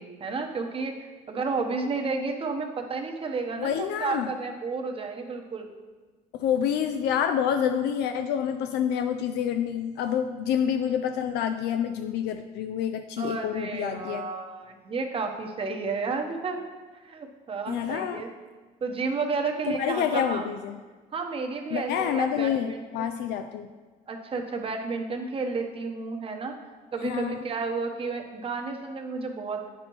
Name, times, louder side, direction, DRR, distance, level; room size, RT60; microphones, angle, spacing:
voice 1, 0.0-5.7 13.2-16.7 17.0-18.3 18.8-20.5 21.1-23.1 24.1-26.6 26.9-29.7, right 4 dB, 35° right, 3 dB, 0.9 m, -32 dB
voice 2, 3.6-4.3 6.4-14.2 17.7-18.2 19.7-20.8 21.7-23.7 27.0-27.4, left 8 dB, 80° left, 7 dB, 0.4 m, -28 dB
8.6 x 6.2 x 3.0 m, 1.3 s
cardioid pair, 110°, 17 cm